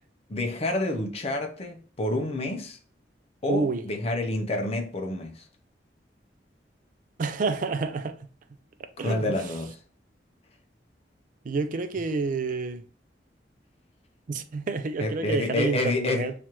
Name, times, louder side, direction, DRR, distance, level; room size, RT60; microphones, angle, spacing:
voice 1, 0.3-2.8 3.4-5.5 9.0-9.8 15.0-16.3, left 2 dB, 35° left, 0.6 m, -28 dB
voice 2, 3.5-3.8 7.2-8.3 9.0-9.4 11.4-12.8 14.3-16.3, right 4 dB, 50° right, 0.4 m, -29 dB
3.0 x 2.5 x 4.3 m
head